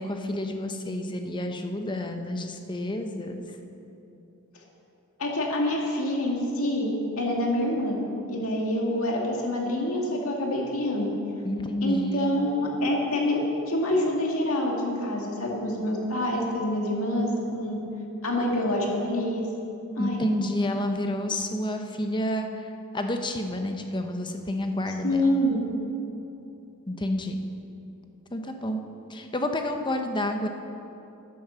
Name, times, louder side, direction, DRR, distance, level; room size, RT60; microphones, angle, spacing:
voice 1, 0.0-3.4 11.4-12.3 20.0-22.7 22.9-25.2 26.9-27.4 28.3-28.8 29.1-30.5, left 1 dB, 20° left, 5 dB, 0.8 m, -29 dB
voice 2, 5.2-8.0 8.3-11.1 11.8-13.4 13.7-17.8 18.2-19.5 20.0-20.2 25.0-25.6, left 1 dB, 75° left, -1 dB, 2.2 m, -26 dB
11.0 x 9.3 x 6.8 m, 2.9 s
head